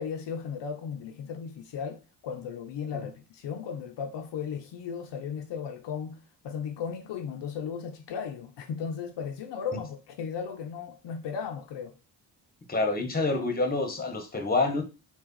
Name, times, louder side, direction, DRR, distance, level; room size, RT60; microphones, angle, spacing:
voice 1, 0.0-11.9, left 6 dB, 65° left, 0.6 m, -36 dB
voice 2, 12.7-14.8, left 3 dB, 20° left, 1.0 m, -27 dB
3.3 x 2.4 x 3.8 m
supercardioid pair, 60°, 45 cm